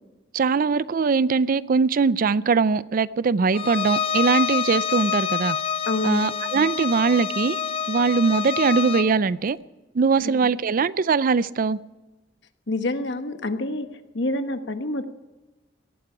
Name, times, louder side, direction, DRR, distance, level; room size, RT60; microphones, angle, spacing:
voice 1, 0.3-5.6 6.0-7.6 7.9-9.6 9.9-11.8, right 5 dB, 50° right, 18 dB, 0.4 m, -21 dB
Bowed string instrument, 3.5-9.1, left 7 dB, 30° left, 0.6 m, -27 dB
voice 2, 5.9-6.3 10.2-10.5 12.7-13.9 14.1-15.0, left 2 dB, 70° left, 8 dB, 1.2 m, -27 dB
18.0 x 13.5 x 4.9 m, 1.1 s
head